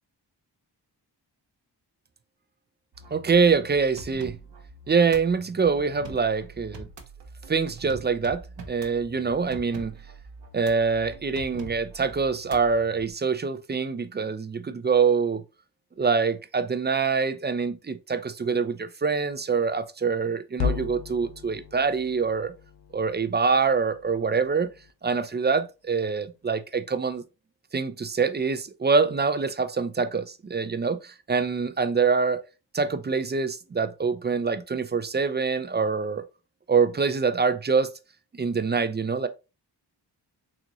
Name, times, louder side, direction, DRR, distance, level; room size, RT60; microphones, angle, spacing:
sound 1, 2.9-13.1, right 3 dB, 70° right, 0.7 m, -44 dB
voice 1, 3.1-4.4 4.9-6.9 7.5-9.9 10.5-15.4 16.0-22.5 22.9-24.7 25.0-27.2 27.7-32.4 32.7-36.2 36.7-37.9 38.3-39.3, right 5 dB, 25° right, 0.3 m, -25 dB
sound 2, 20.5-24.9, left 7 dB, 60° left, 0.8 m, -35 dB
3.8 x 2.5 x 2.8 m
cardioid pair, 50°, 44 cm